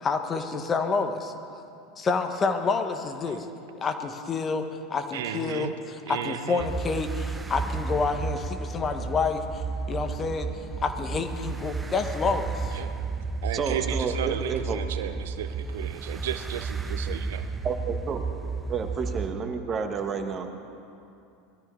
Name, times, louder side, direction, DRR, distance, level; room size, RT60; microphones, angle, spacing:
voice 1, 0.0-1.3 2.0-3.5 3.8-9.6 9.9-10.5 10.8-12.8, left 4 dB, 30° left, 7 dB, 1.2 m, -28 dB
voice 2, 5.1-5.7 6.1-6.7 12.7-12.9 13.4-17.5, right 11 dB, 70° right, 10 dB, 0.6 m, -34 dB
sound 1, 6.6-19.3, right 4 dB, 15° right, 0.7 m, -33 dB
voice 3, 13.5-14.8 17.6-18.2 18.7-20.5, right 5 dB, 35° right, 6 dB, 1.5 m, -30 dB
21.0 x 13.0 x 3.9 m, 2.6 s
hypercardioid pair, 80°, 0 cm